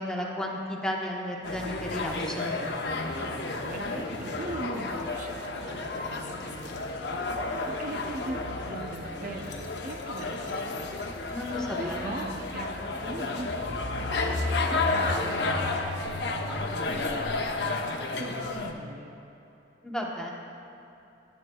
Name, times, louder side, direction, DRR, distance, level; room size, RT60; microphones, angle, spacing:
voice 1, 0.0-2.6 11.3-12.2 19.8-20.3, left 1 dB, 5° left, -2 dB, 1.0 m, -33 dB
sound 1, 1.4-18.7, left 3 dB, 65° left, 0.8 m, -31 dB
voice 2, 3.0-19.1, right 2 dB, 50° right, 3 dB, 0.6 m, -41 dB
16.0 x 10.0 x 2.3 m, 2.8 s
head